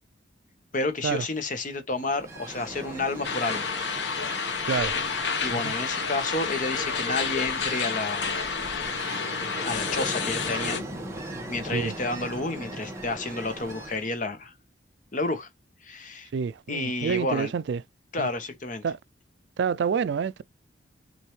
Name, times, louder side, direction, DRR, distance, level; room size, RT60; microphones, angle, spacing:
voice 1, 0.7-3.7 5.4-8.4 9.6-10.8 11.5-14.5 15.1-15.5 15.8-16.3 16.7-17.5 18.1-18.8, left 2 dB, 45° left, 1.0 m, -30 dB
Ocean, 1.9-14.1, right 1 dB, 15° right, 1.3 m, -39 dB
sound 1, 3.2-10.8, left 5 dB, 70° left, 0.9 m, -30 dB
voice 2, 4.7-5.0 5.5-5.7 11.7-11.9 16.3-17.8 18.2-18.3 18.8-19.0 19.6-20.4, right 6 dB, 65° right, 0.3 m, -28 dB
6.4 x 2.7 x 3.1 m
head